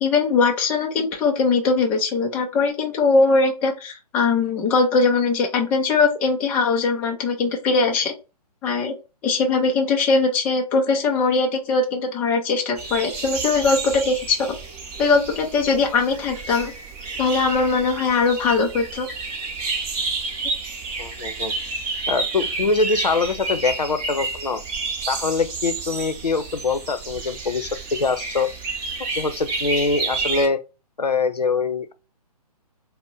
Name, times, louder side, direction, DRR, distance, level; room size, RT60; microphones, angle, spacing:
voice 1, 0.0-8.1 8.6-8.9 9.2-14.6 15.0-16.7 17.2-19.1, left 4 dB, 10° left, 0.3 m, -20 dB
sound 1, 12.8-30.5, right 3 dB, 20° right, 0.7 m, -30 dB
voice 2, 21.0-21.5 22.1-24.6 25.1-28.5 29.2-30.6 31.0-31.9, left 4 dB, 80° left, 0.6 m, -23 dB
4.3 x 2.1 x 3.7 m
figure-of-eight pair, 130°, 20 cm